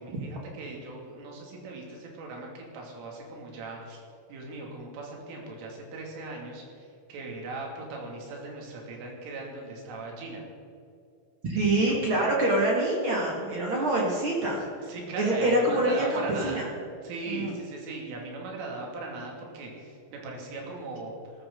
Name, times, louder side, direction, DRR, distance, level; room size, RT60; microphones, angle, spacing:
voice 1, 0.0-4.0 4.3-10.4 11.8-11.9 14.9-16.6 17.0-21.2, right 2 dB, 75° right, -1 dB, 5.1 m, -39 dB
voice 2, 11.4-14.6 14.9-16.6 17.3-17.5, right 1 dB, 50° right, -3 dB, 1.6 m, -26 dB
18.5 x 13.5 x 3.9 m, 2.5 s
omnidirectional pair, 5.8 m